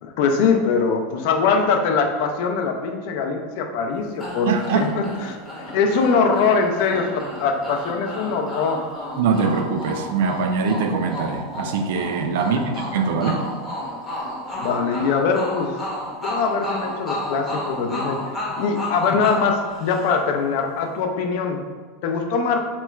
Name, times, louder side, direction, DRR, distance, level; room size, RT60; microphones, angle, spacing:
voice 1, 0.0-8.9 12.4-12.8 14.5-15.8 16.2-18.2 18.6-21.6 22.0-22.6, left 5 dB, 55° left, 4 dB, 0.4 m, -22 dB
sound 1, 4.2-20.4, left 1 dB, 5° left, 0.7 m, -32 dB
voice 2, 4.5-4.9 9.2-13.5, right 5 dB, 70° right, 5 dB, 0.3 m, -22 dB
2.9 x 2.3 x 3.2 m, 1.4 s
supercardioid pair, 170°, 0 cm